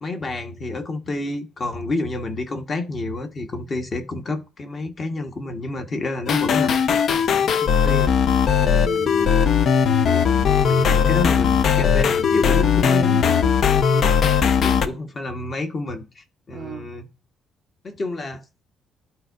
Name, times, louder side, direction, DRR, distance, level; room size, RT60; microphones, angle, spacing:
voice 1, 0.0-8.1 8.5-9.3 9.9-13.2 13.8-14.2 14.6-17.1 17.8-18.6, left 2 dB, 30° left, 1.1 m, -30 dB
sound 1, 6.3-14.9, left 7 dB, 50° left, 0.6 m, -18 dB
voice 2, 8.7-9.1 13.1-15.0 16.5-16.9, right 7 dB, 45° right, 0.5 m, -38 dB
12.0 x 4.5 x 2.4 m
cardioid pair, 160°, 0 cm